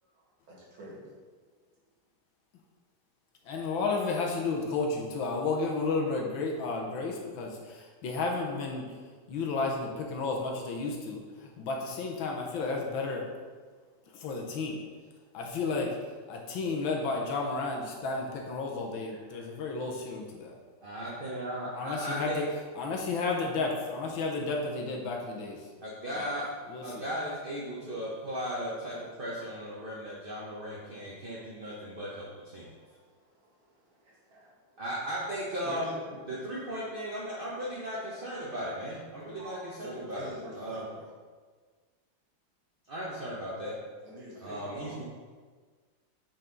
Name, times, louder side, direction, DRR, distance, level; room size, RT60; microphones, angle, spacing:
voice 1, 0.2-1.0 8.4-8.7 13.7-14.0 19.0-19.6 25.6-25.9 32.5-34.8 35.6-36.3 39.3-41.1 44.0-45.0, equal, 70° right, -4 dB, 2.6 m, -48 dB
voice 2, 3.4-8.8 9.3-13.2 14.1-14.8 15.3-15.9 16.3-20.6 21.7-22.5 22.7-25.7 26.2-27.0, left 3 dB, 70° left, 0 dB, 1.6 m, -32 dB
voice 3, 20.8-22.4 25.8-26.4 26.8-32.6 34.8-35.9 36.3-40.2 40.5-40.8 42.9-43.7 44.4-45.0, equal, 40° right, -6 dB, 0.8 m, -36 dB
8.9 x 4.3 x 3.9 m, 1.5 s
omnidirectional pair, 2.3 m